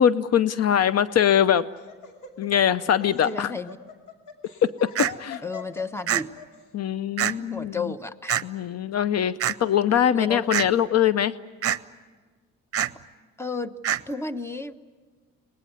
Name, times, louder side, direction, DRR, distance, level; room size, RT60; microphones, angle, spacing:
voice 1, 0.0-1.6 2.4-3.5 4.6-5.4 6.7-7.8 8.4-9.3 9.6-11.3, left 9 dB, 55° left, 16 dB, 0.7 m, -22 dB
Laughter, 1.5-6.6, left 7 dB, 80° left, 2.6 m, -43 dB
voice 2, 3.2-3.8 5.4-6.3 7.3-8.4 10.1-10.5 13.4-13.7 14.1-14.8, left 3 dB, 10° left, 12 dB, 1.0 m, -32 dB
sound 1, 5.0-5.1 6.1-6.2 7.2-7.3 8.3-8.4 9.4-9.5 10.5-10.7 11.6-11.8 12.7-12.9 13.8-14.0, right 10 dB, 50° right, 0.7 m, -24 dB
23.5 x 19.5 x 9.4 m, 1.4 s
cardioid pair, 90°, 30 cm